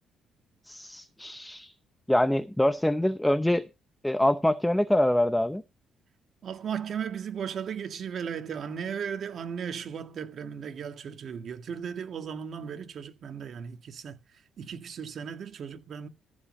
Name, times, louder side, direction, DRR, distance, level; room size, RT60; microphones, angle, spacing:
voice 1, 0.6-1.7 2.1-3.7 4.0-5.6, left 1 dB, 5° left, 0.7 m, -25 dB
voice 2, 6.4-14.2 14.6-16.1, right 7 dB, 60° right, 1.8 m, -36 dB
14.5 x 5.5 x 6.5 m
cardioid pair, 90°, 0 cm